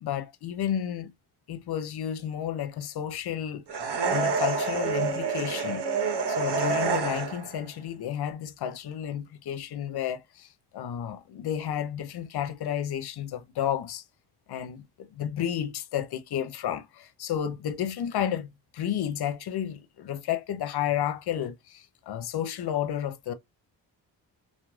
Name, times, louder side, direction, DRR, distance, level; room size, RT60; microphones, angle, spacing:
voice 1, 0.0-1.1 1.5-3.6 4.1-5.8 6.3-14.0 14.5-23.3, left 10 dB, 60° left, 0.7 m, -32 dB
sound 1, 3.7-7.6, right 5 dB, 60° right, 1.0 m, -28 dB
3.0 x 2.2 x 2.3 m
supercardioid pair, 45°, 45 cm